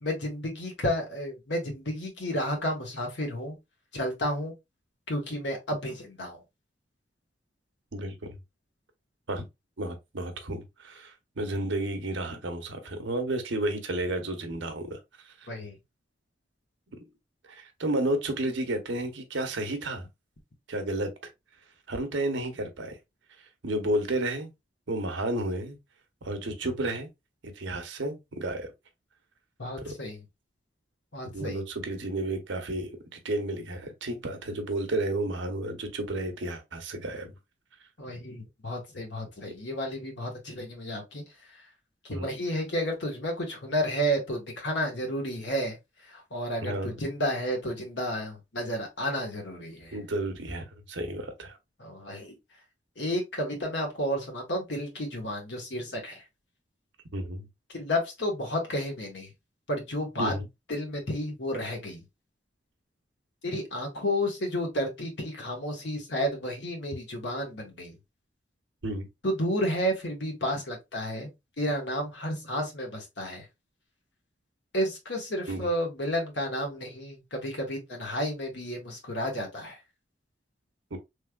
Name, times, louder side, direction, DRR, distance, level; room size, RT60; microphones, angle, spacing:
voice 1, 0.0-3.6 3.9-4.5 5.1-6.4 15.5-15.7 29.6-30.2 31.1-31.6 38.0-41.2 42.0-45.8 46.1-49.9 51.8-52.3 53.0-56.2 57.7-59.3 59.7-60.4 60.7-62.0 63.4-67.9 69.2-71.3 71.6-73.4 74.7-79.8, equal, 70° left, 1.3 m, -31 dB
voice 2, 7.9-8.4 9.3-9.5 9.8-15.0 15.3-15.4 17.4-20.1 20.7-21.1 21.9-23.0 23.6-24.5 24.9-25.8 26.2-27.1 27.6-28.7 31.3-37.3 42.1-42.3 46.6-46.9 49.9-51.6 57.1-57.5 60.2-60.5 68.8-69.1 75.5-75.7 80.9-81.0, right 1 dB, 85° right, 0.8 m, -32 dB
3.2 x 3.2 x 2.2 m
head